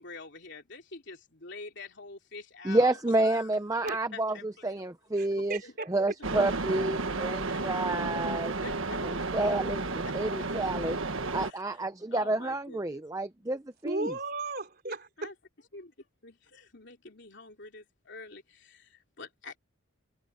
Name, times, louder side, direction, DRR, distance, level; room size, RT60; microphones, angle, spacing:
voice 1, 0.0-3.5 3.9-4.7 5.6-5.7 7.4-7.8 8.6-9.3 10.0-10.1 11.4-11.8 12.1-13.1 15.2-15.3 15.7-19.6, left 3 dB, 55° left, 3.3 m, -46 dB
voice 2, 2.6-5.6 5.9-8.5 9.0-11.0 11.3-14.1, right 2 dB, 15° right, 0.7 m, -29 dB
voice 3, 5.2-5.9 13.8-15.3, right 2 dB, 45° right, 3.7 m, -35 dB
sound 1, 6.2-11.5, right 3 dB, 70° right, 1.4 m, -32 dB
head